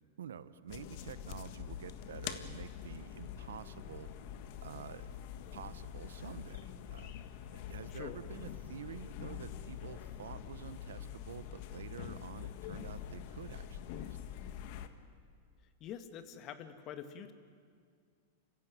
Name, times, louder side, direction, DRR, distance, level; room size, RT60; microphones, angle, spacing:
voice 1, 0.2-4.1 4.6-5.1 5.5-14.2, right 8 dB, 85° right, 14 dB, 1.0 m, -48 dB
sound 1, 0.7-14.9, left 9 dB, 55° left, 1.5 m, -45 dB
voice 2, 15.8-17.3, left 9 dB, 40° left, 9 dB, 1.8 m, -46 dB
28.5 x 15.5 x 9.2 m, 2.1 s
hypercardioid pair, 125°, 0 cm